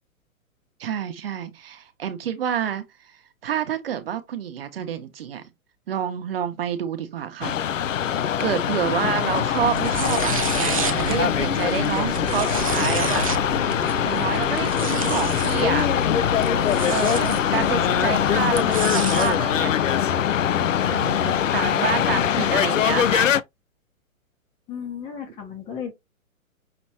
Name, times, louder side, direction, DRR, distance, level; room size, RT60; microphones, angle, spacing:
voice 1, 0.8-3.1 3.4-5.5 5.9-7.5 8.4-13.2 13.6-13.7 14.0-15.9 16.9-19.8 20.8-23.4, right 9 dB, 45° right, 0.9 m, -28 dB
sound 1, 7.4-23.4, left 9 dB, 65° left, 0.5 m, -22 dB
sound 2, 9.6-19.4, right 5 dB, 25° right, 0.4 m, -31 dB
voice 2, 17.5-18.1 22.0-22.5 24.7-25.9, left 8 dB, 15° left, 0.7 m, -34 dB
6.0 x 3.0 x 2.8 m
figure-of-eight pair, 125°, 42 cm